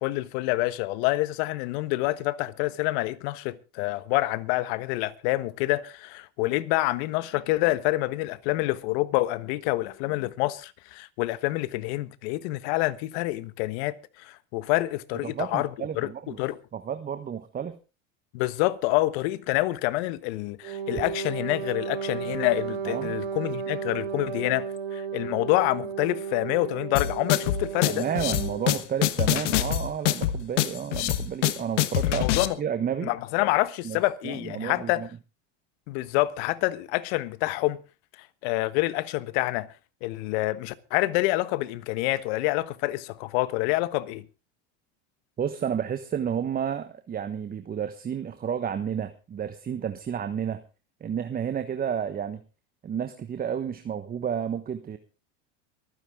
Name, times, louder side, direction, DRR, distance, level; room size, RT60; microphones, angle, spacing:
voice 1, 0.0-16.6 18.3-24.7 24.9-28.1 32.1-32.6 33.0-35.1 35.9-37.8 38.4-39.7 40.0-44.2, left 18 dB, 65° left, 1.3 m, -27 dB
voice 2, 15.2-16.4 16.7-17.8 20.9-21.0 22.9-23.1 27.9-32.2 32.6-33.1 33.8-34.0 34.2-35.1 45.4-50.6 51.0-52.4 52.8-55.0, right 8 dB, 25° right, 1.3 m, -31 dB
Wind instrument woodwind instrument, 20.6-28.8, right 6 dB, 75° right, 6.8 m, -34 dB
sound 1, 26.9-32.5, left 13 dB, 85° left, 1.3 m, -25 dB
24.0 x 9.9 x 3.7 m
supercardioid pair, 115°, 35 cm